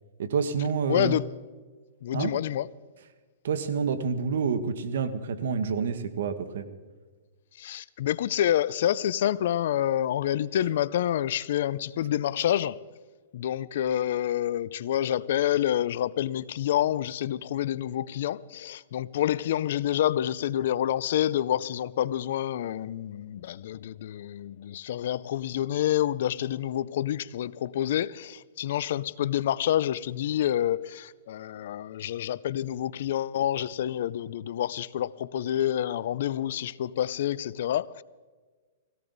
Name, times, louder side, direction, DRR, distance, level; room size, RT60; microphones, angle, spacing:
voice 1, 0.2-1.2 2.1-2.3 3.4-6.7, right 6 dB, 70° right, 1.3 m, -28 dB
voice 2, 0.9-1.3 2.0-2.7 7.6-12.8 13.3-38.0, left 11 dB, 60° left, 0.5 m, -28 dB
19.0 x 17.0 x 4.0 m
hypercardioid pair, 160°, 0 cm